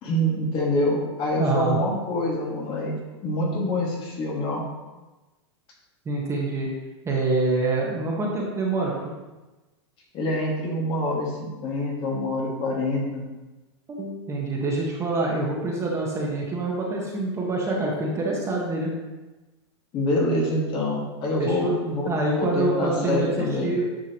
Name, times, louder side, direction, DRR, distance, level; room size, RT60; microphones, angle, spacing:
voice 1, 0.0-2.9 3.2-4.6 10.1-13.2 19.9-23.7, left 1 dB, 35° left, -2 dB, 2.0 m, -26 dB
voice 2, 1.4-1.8 6.0-6.7 7.0-9.1 13.9-19.0 21.4-21.7 22.1-23.9, right 2 dB, 20° right, -2 dB, 1.4 m, -26 dB
9.3 x 5.5 x 3.1 m, 1.1 s
hypercardioid pair, 125°, 15 cm